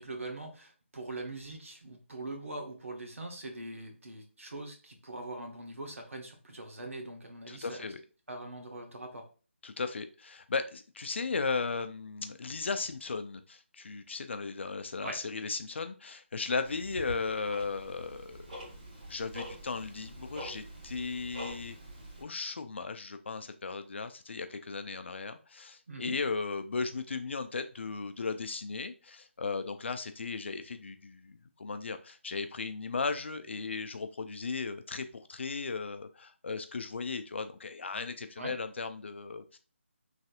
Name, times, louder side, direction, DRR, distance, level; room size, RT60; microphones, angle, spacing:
voice 1, 0.0-7.9 8.3-9.3 15.0-15.2 25.9-26.2 38.4-38.6, right 2 dB, 80° right, 4 dB, 0.9 m, -42 dB
voice 2, 7.5-8.0 9.6-18.6 19.1-21.8 22.2-39.6, left 4 dB, 60° left, 9 dB, 0.4 m, -36 dB
Tick-tock, 16.6-22.2, equal, 40° right, 1.3 m, -45 dB
3.2 x 2.7 x 2.4 m, 0.35 s
figure-of-eight pair, 160°, 7 cm